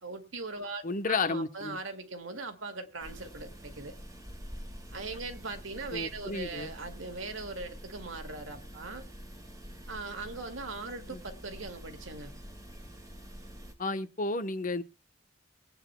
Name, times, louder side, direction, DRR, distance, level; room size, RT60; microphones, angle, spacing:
voice 1, 0.0-3.9 4.9-9.0 9.9-12.3, right 3 dB, 85° right, 2.1 m, -40 dB
voice 2, 0.8-1.8 5.9-6.7 11.1-11.2 13.8-14.8, left 3 dB, 45° left, 0.9 m, -32 dB
sound 1, 3.0-13.7, equal, 15° right, 1.8 m, -47 dB
22.5 x 9.1 x 2.2 m
head